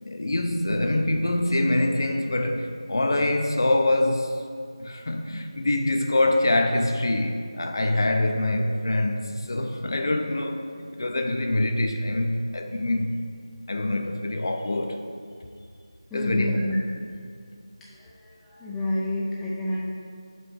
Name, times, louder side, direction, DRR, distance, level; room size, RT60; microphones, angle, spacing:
voice 1, 0.0-4.4 4.8-13.2 13.7-15.0 16.1-16.7, left 1 dB, 50° left, 0.6 m, -25 dB
voice 2, 16.1-16.8 18.0-18.1 18.5-19.8, left 1 dB, 5° left, 0.5 m, -28 dB
6.1 x 5.4 x 4.5 m
figure-of-eight pair, 165°, 3 cm